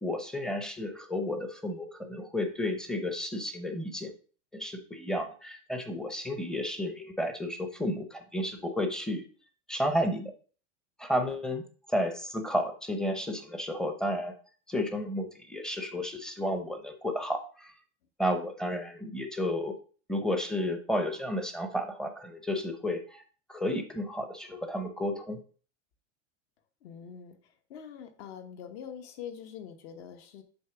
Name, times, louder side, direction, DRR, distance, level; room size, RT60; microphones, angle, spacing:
voice 1, 0.0-4.1 4.5-9.2 9.7-10.3 11.0-11.6 11.9-14.3 14.7-17.7 18.2-19.8 20.1-23.2 23.5-25.4, left 1 dB, ahead, 6 dB, 0.7 m, -32 dB
voice 2, 26.8-30.4, left 8 dB, 60° left, 6 dB, 1.4 m, -44 dB
7.8 x 3.3 x 5.9 m, 0.39 s
supercardioid pair, 155°, 36 cm